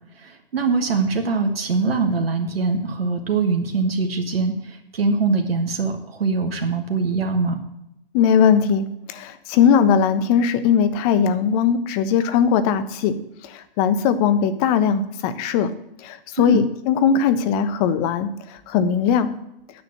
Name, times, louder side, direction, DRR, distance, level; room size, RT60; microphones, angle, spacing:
voice 1, 0.2-7.6 16.4-16.6, right 4 dB, 85° right, 5 dB, 1.6 m, -23 dB
voice 2, 8.1-13.2 13.4-15.7 16.0-19.3, left 7 dB, 40° left, 12 dB, 1.2 m, -19 dB
9.7 x 6.6 x 7.4 m, 0.83 s
hypercardioid pair, 120°, 29 cm